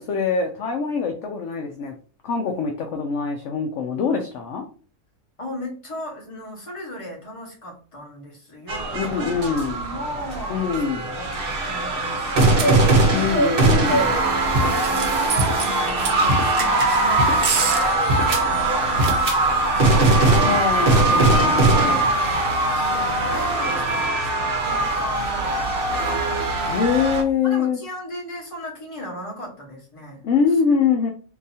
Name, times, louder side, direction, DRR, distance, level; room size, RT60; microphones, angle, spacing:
voice 1, 0.0-1.9 2.2-4.6 8.9-9.7 10.5-11.0 13.1-14.1 20.2-22.1 26.6-27.8 30.2-31.1, left 6 dB, 65° left, 4 dB, 0.8 m, -24 dB
voice 2, 5.4-10.7 11.1-13.4 14.1-20.1 21.8-26.3 26.6-27.1 27.4-30.2, equal, 25° left, -2 dB, 1.2 m, -36 dB
sound 1, 8.7-27.2, right 2 dB, 50° right, 0.7 m, -20 dB
3.8 x 2.7 x 2.7 m, 0.38 s
omnidirectional pair, 1.6 m